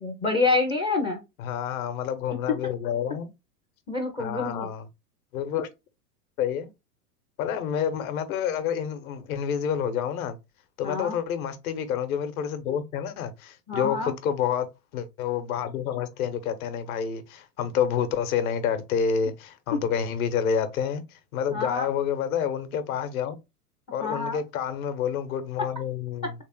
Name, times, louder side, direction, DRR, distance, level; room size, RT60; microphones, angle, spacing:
voice 1, 0.0-1.2 3.9-4.7 10.8-11.2 13.7-14.1 21.5-21.9 24.0-24.4, left 3 dB, 10° left, 0.3 m, -27 dB
voice 2, 1.4-3.3 4.2-4.9 5.3-5.7 6.4-6.7 7.4-10.4 10.8-14.7 14.9-23.4 23.9-26.3, left 8 dB, 60° left, 0.9 m, -28 dB
3.3 x 3.3 x 3.0 m
hypercardioid pair, 100°, 48 cm